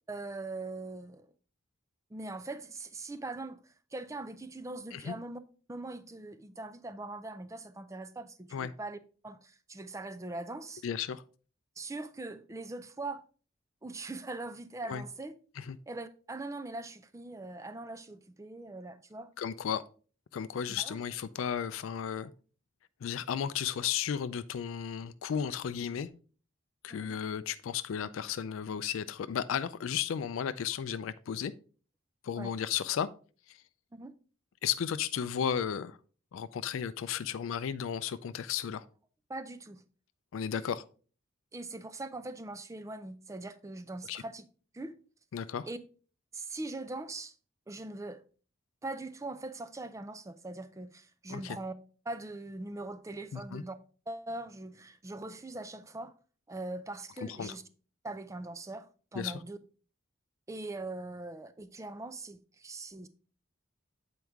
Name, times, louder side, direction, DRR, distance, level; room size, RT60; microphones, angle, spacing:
voice 1, 0.1-1.3 2.1-5.4 5.7-10.8 11.8-13.2 13.8-15.4 15.9-19.3 20.8-21.0 26.9-27.1 32.4-32.5 33.9-34.1 39.3-39.8 41.5-44.5 44.7-45.0 45.7-45.8 46.3-47.4 47.7-48.2 48.8-51.7 52.1-53.8 54.1-56.1 56.5-57.6 58.0-59.6 60.5-63.1, right 2 dB, 15° right, 0.4 m, -41 dB
voice 2, 10.8-11.2 14.9-15.0 15.6-15.8 19.4-19.8 20.3-22.3 23.0-26.1 26.8-31.5 32.2-33.1 33.5-33.6 34.6-36.0 36.3-38.8 40.3-40.8 44.1-44.2 45.3-45.7 51.3-51.6 53.3-53.6 57.2-57.5 59.2-59.4, left 8 dB, 75° left, 0.4 m, -34 dB
7.9 x 4.6 x 3.5 m
head